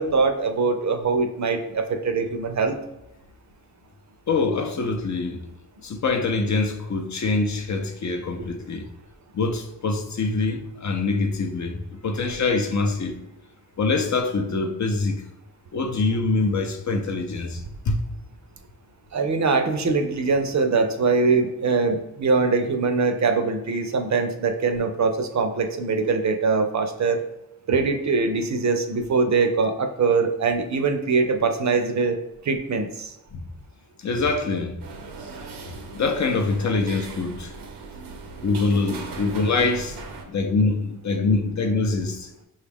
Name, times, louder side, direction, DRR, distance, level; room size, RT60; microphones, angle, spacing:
voice 1, 0.0-2.8 19.1-27.2 27.7-32.2 32.4-33.1, right 4 dB, 45° right, 0.5 m, -22 dB
voice 2, 4.3-5.4 5.8-8.9 9.3-13.2 13.8-15.2 15.7-18.0 33.3-33.4 34.0-34.8 35.9-37.5 38.4-40.0 40.2-42.3, left 3 dB, 45° left, 0.6 m, -24 dB
sound 1, 34.8-40.2, right 4 dB, 85° right, 0.7 m, -39 dB
5.2 x 2.4 x 3.4 m
cardioid pair, 65°, 39 cm